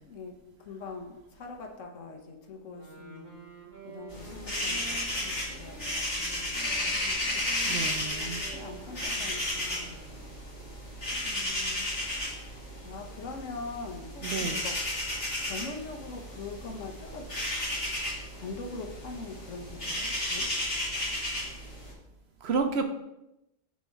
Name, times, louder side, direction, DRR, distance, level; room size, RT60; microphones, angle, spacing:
voice 1, 0.1-3.4 3.8-7.5 7.8-10.0 11.1-11.9 12.8-14.8 15.4-17.3 18.3-20.5, left 3 dB, 85° left, 3 dB, 1.3 m, -43 dB
Wind instrument woodwind instrument, 2.7-10.6, right 3 dB, 40° right, 1.5 m, -49 dB
sound 1, 4.1-21.9, left 1 dB, 50° left, 2.5 m, -33 dB
voice 2, 7.7-8.4 14.2-14.6 22.4-22.8, right 5 dB, 65° right, 6 dB, 0.9 m, -30 dB
7.0 x 4.2 x 4.5 m, 0.89 s
omnidirectional pair, 1.3 m